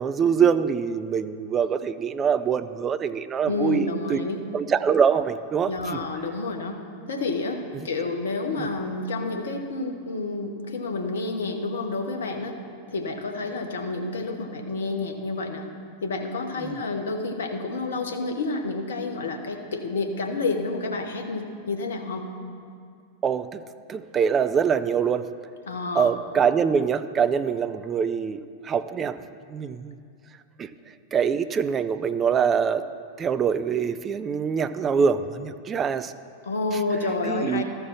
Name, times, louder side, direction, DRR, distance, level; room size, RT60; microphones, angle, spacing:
voice 1, 0.0-3.8 4.1-4.2 4.5-6.0 7.7-7.9 8.6-8.7 16.6-16.8 23.2-23.6 23.9-25.3 25.9-29.2 29.5-29.9 30.6-30.7 31.1-32.8 33.2-36.1 37.3-37.6, right 7 dB, 25° right, 12 dB, 0.3 m, -24 dB
voice 2, 3.4-4.4 5.7-6.8 7.1-12.6 12.9-15.7 16.0-22.3 25.7-26.1 36.4-37.6, left 3 dB, 65° left, 4 dB, 0.9 m, -29 dB
13.5 x 4.5 x 5.8 m, 2.3 s
figure-of-eight pair, 90°, 0 cm